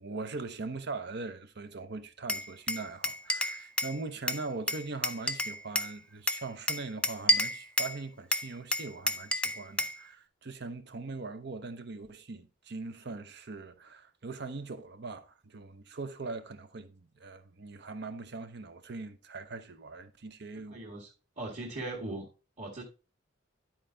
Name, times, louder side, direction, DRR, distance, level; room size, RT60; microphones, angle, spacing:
voice 1, 0.0-20.8, right 3 dB, 60° right, 0.8 m, -41 dB
Glass, 2.3-4.0 4.3-5.9 6.3-8.0 8.3-10.0, left 1 dB, 5° left, 0.4 m, -30 dB
voice 2, 20.7-21.1 21.4-22.2 22.6-22.8, right 2 dB, 40° right, 1.8 m, -38 dB
10.5 x 4.5 x 3.8 m
head